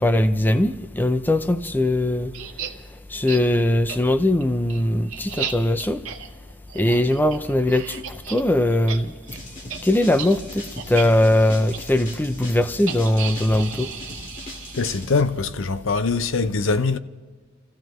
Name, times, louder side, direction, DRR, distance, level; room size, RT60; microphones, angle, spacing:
voice 1, 0.0-2.3 3.1-6.0 6.7-9.1 9.8-13.9, left 1 dB, 10° left, 0.4 m, -20 dB
sound 1, 2.3-2.7 3.3-3.4 3.9-4.0 4.4-8.4 8.7-9.0 9.2-9.4 9.7-9.8 10.1-10.3 10.8-11.1 11.7-11.8 12.9-15.2, right 7 dB, 75° right, 1.7 m, -34 dB
sound 2, 9.3-15.2, left 1 dB, 40° left, 2.0 m, -39 dB
voice 2, 14.7-17.0, left 4 dB, 65° left, 0.6 m, -22 dB
29.0 x 15.0 x 3.1 m
head